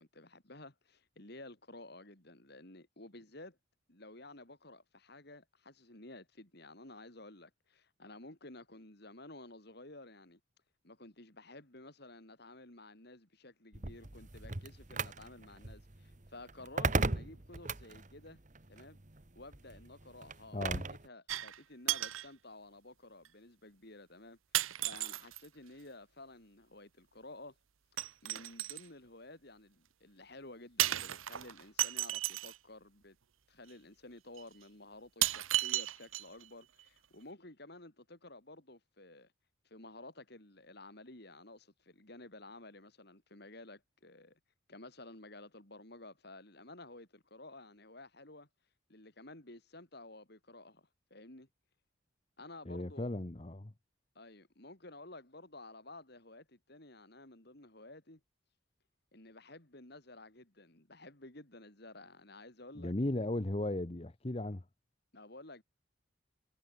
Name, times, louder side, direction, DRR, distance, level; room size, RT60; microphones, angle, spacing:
voice 1, 0.0-3.6 3.9-10.4 10.8-18.4 18.7-19.0 19.3-24.4 24.8-27.6 28.2-33.2 33.5-39.3 39.6-44.4 44.7-48.5 48.9-51.5 52.4-53.1 54.1-58.2 59.1-62.9 65.1-65.6, left 2 dB, 50° left, 3.1 m, -53 dB
sound 1, 13.7-21.1, right 3 dB, 35° right, 1.5 m, -38 dB
voice 2, 20.5-20.8 52.7-53.7 62.8-64.6, left 1 dB, 30° left, 0.9 m, -36 dB
sound 2, 21.3-21.6 21.9-22.3 23.3-23.4 24.5-25.5 28.0-28.9 30.8-32.6 33.7-33.8 34.4-34.5 35.2-36.5 36.8-36.9, right 14 dB, 80° right, 0.8 m, -34 dB
head